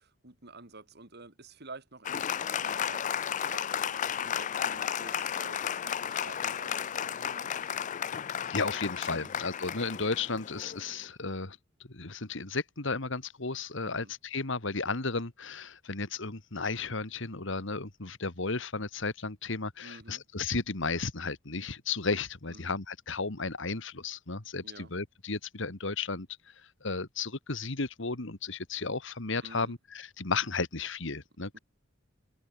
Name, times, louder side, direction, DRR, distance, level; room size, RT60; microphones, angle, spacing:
voice 1, 0.0-7.8 9.1-9.3 13.8-14.1 19.8-20.2 22.5-22.7 24.6-24.9 29.4-29.8 31.5-31.6, right 3 dB, 55° right, 3.6 m, -50 dB
Applause, 2.0-11.0, left 9 dB, 40° left, 0.4 m, -33 dB
voice 2, 8.1-11.6 11.9-26.3 26.8-31.6, left 4 dB, 70° left, 2.1 m, -34 dB
head